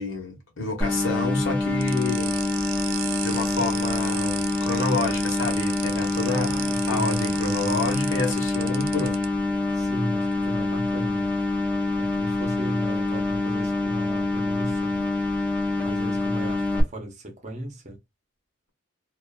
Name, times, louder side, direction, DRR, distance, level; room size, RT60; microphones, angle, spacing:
voice 1, 0.0-2.4 3.2-6.5 6.9-9.2, left 3 dB, 65° left, 1.0 m, -28 dB
sound 1, 0.8-16.8, left 2 dB, 5° left, 0.5 m, -26 dB
sound 2, 1.8-9.2, right 13 dB, 70° right, 0.3 m, -35 dB
voice 2, 6.2-7.9 9.7-11.3 12.0-15.1 15.8-18.0, right 1 dB, 35° right, 0.8 m, -35 dB
2.5 x 2.4 x 2.2 m
head